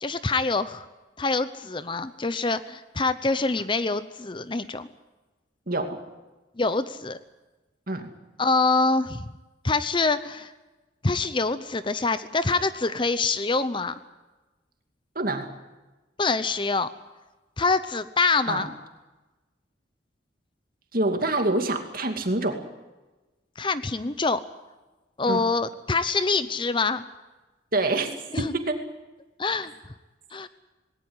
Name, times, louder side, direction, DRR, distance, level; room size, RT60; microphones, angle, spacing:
voice 1, 0.0-0.8 1.2-4.9 6.6-7.2 8.4-9.3 9.6-10.5 11.0-13.9 16.2-16.9 17.6-18.7 23.6-24.4 25.2-27.1 28.3-28.5 29.4-29.7 30.3-30.5, left 3 dB, 25° left, 13 dB, 0.7 m, -25 dB
voice 2, 5.7-6.0 7.9-8.1 15.1-15.5 18.5-18.7 20.9-22.6 25.3-25.4 27.7-28.1 28.4-28.8, right 2 dB, 50° right, 5 dB, 2.5 m, -26 dB
19.5 x 18.5 x 9.7 m, 1.1 s
head